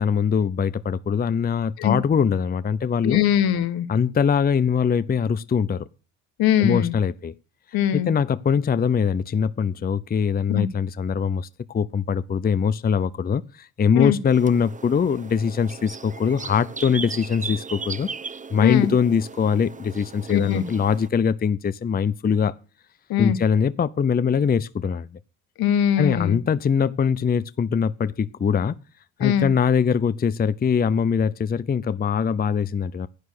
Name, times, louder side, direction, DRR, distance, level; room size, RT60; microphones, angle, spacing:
voice 1, 0.0-3.2 3.9-5.9 6.6-7.3 7.9-18.1 18.5-22.5 23.2-25.1 26.0-28.8 29.2-33.1, left 6 dB, 25° left, 0.7 m, -22 dB
voice 2, 3.0-3.9 6.4-6.9 7.7-8.1 10.5-10.7 13.9-14.2 18.6-18.9 20.3-20.6 23.1-23.4 25.6-26.4 29.2-29.5, left 10 dB, 70° left, 1.6 m, -21 dB
sound 1, 14.3-21.1, right 5 dB, 20° right, 0.9 m, -37 dB
11.0 x 9.6 x 6.6 m
supercardioid pair, 65°, 38 cm